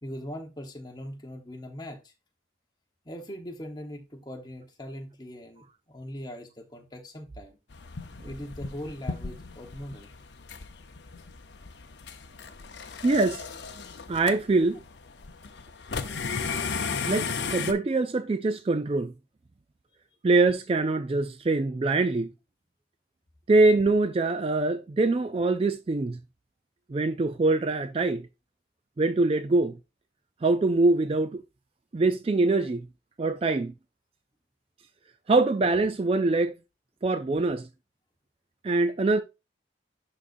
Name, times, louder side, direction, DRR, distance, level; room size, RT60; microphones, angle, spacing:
voice 1, 0.0-2.1 3.0-7.6 8.2-10.1, equal, 20° left, 1.1 m, -40 dB
sound 1, 7.7-17.7, left 5 dB, 65° left, 0.7 m, -35 dB
voice 2, 13.0-13.4 14.1-14.8 17.1-19.1 20.2-22.3 23.5-26.2 26.9-28.3 29.0-29.8 30.4-31.4 31.9-32.9 33.2-33.7 35.3-36.6 37.0-37.7 38.6-39.2, right 3 dB, 30° right, 0.3 m, -24 dB
11.0 x 4.1 x 2.6 m
head